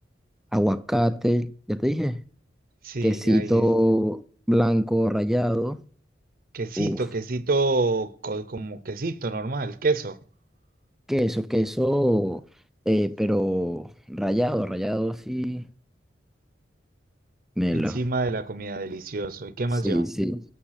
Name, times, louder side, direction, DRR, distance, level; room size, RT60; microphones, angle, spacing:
voice 1, 0.5-2.2 3.0-5.8 6.8-7.0 11.1-12.4 12.9-15.7 17.6-18.0 19.8-20.4, equal, ahead, 0.4 m, -24 dB
voice 2, 2.8-3.7 6.5-10.2 17.7-20.0, right 3 dB, 50° right, 0.7 m, -28 dB
8.8 x 7.2 x 5.8 m
head